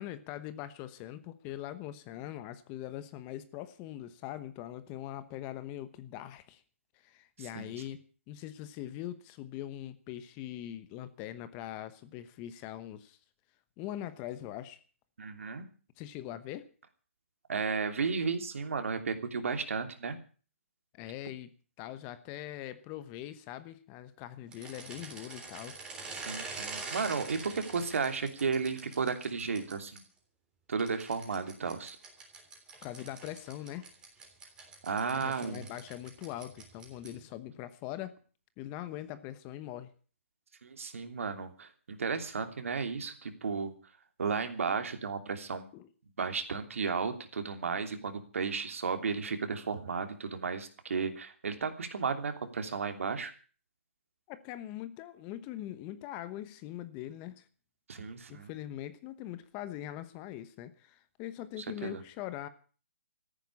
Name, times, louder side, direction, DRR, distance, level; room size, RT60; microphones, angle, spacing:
voice 1, 0.0-6.6 7.0-8.0 8.3-13.2 13.8-14.8 16.0-16.7 20.9-21.5 21.8-25.8 32.8-33.9 35.1-38.1 38.6-39.9 45.7-45.9 54.3-57.5 58.3-62.5, left 13 dB, 20° left, 14 dB, 1.0 m, -42 dB
voice 2, 7.4-7.7 15.2-15.6 17.5-20.2 26.2-30.0 30.7-32.0 34.8-35.6 40.6-43.7 44.2-45.7 46.2-53.3 57.9-58.5 61.6-62.0, right 5 dB, 70° right, 8 dB, 3.0 m, -34 dB
sound 1, 24.5-30.0 30.8-37.3, right 4 dB, 10° right, 3.5 m, -45 dB
14.5 x 10.5 x 8.4 m, 0.40 s
hypercardioid pair, 160°, 7 cm